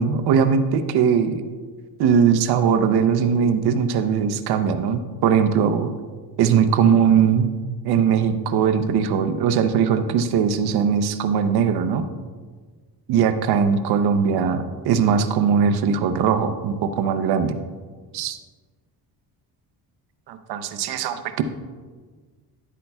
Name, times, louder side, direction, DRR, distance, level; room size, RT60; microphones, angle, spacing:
voice 1, 0.0-1.4 2.0-5.9 6.4-7.5 7.8-12.0 13.1-17.6 18.1-18.4 20.3-21.4, right 7 dB, 80° right, 9 dB, 0.7 m, -20 dB
11.0 x 8.3 x 2.3 m, 1.5 s
cardioid pair, 120°, 38 cm